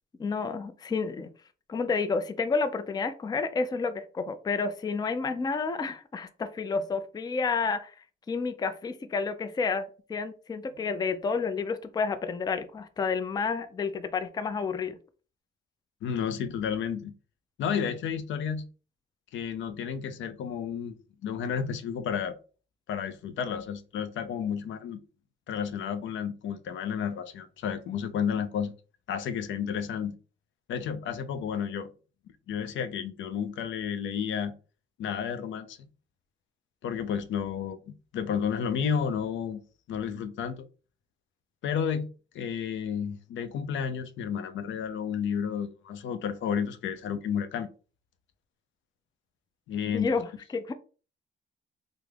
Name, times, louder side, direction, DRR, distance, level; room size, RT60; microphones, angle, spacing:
voice 1, 0.2-1.3 1.7-15.0 49.8-50.7, left 4 dB, 20° left, 0.4 m, -30 dB
voice 2, 16.0-17.1 17.6-18.6 19.3-20.9 21.2-22.4 22.9-25.0 25.5-28.7 29.1-30.1 30.7-31.9 32.5-34.5 35.0-35.8 36.8-37.8 38.1-39.6 39.9-40.7 41.6-42.1 42.3-47.7 49.7-50.1, left 7 dB, 75° left, 0.5 m, -31 dB
3.3 x 2.0 x 3.4 m
cardioid pair, 90°, 20 cm